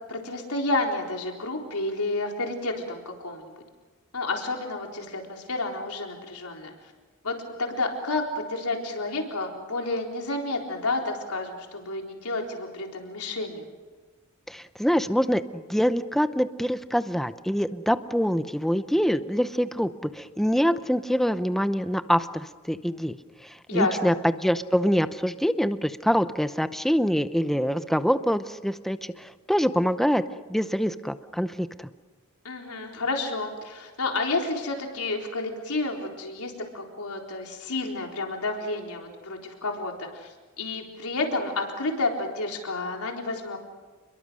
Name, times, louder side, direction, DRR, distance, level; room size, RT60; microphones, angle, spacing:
voice 1, 0.1-3.5 4.1-6.7 7.2-13.7 23.7-24.1 32.4-43.6, left 2 dB, 80° left, 1 dB, 4.1 m, -30 dB
voice 2, 14.5-23.2 23.4-24.1 24.4-30.2 30.5-31.9, equal, ahead, 11 dB, 0.7 m, -25 dB
29.5 x 22.0 x 6.4 m, 1.3 s
head